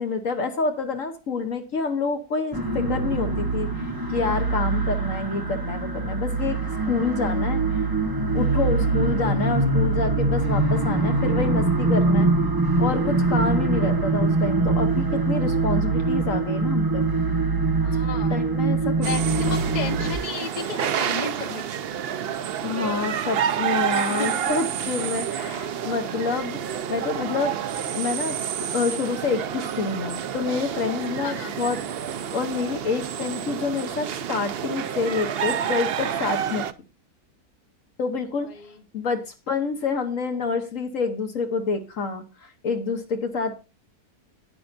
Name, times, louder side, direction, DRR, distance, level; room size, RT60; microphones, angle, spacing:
voice 1, 0.0-6.6 6.9-7.8 8.3-12.3 12.8-17.1 18.2-19.1 19.5-19.6 22.6-27.6 27.9-28.4 28.7-31.8 32.3-36.7 38.0-38.5 38.9-43.6, left 4 dB, 60° left, 7 dB, 1.5 m, -28 dB
sound 1, 2.5-20.2, right 3 dB, 15° right, 1.5 m, -23 dB
voice 2, 17.8-18.4 19.0-22.0 23.9-24.5 31.2-31.5 38.5-38.7, left 5 dB, 30° left, 6 dB, 1.2 m, -33 dB
sound 2, 19.0-36.7, right 8 dB, 60° right, 0.6 m, -29 dB
12.5 x 10.0 x 2.5 m, 0.28 s
omnidirectional pair, 1.6 m